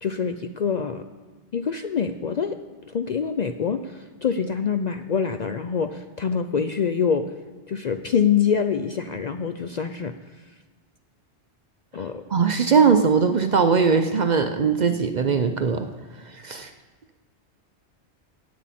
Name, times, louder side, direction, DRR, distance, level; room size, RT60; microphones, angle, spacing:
voice 1, 0.0-1.0 1.5-2.6 2.9-7.3 7.7-10.1 11.9-12.2, left 7 dB, 55° left, 8 dB, 0.5 m, -25 dB
voice 2, 12.3-15.9 16.3-16.7, right 5 dB, 50° right, 8 dB, 0.6 m, -20 dB
17.0 x 8.3 x 4.2 m, 1.3 s
omnidirectional pair, 1.2 m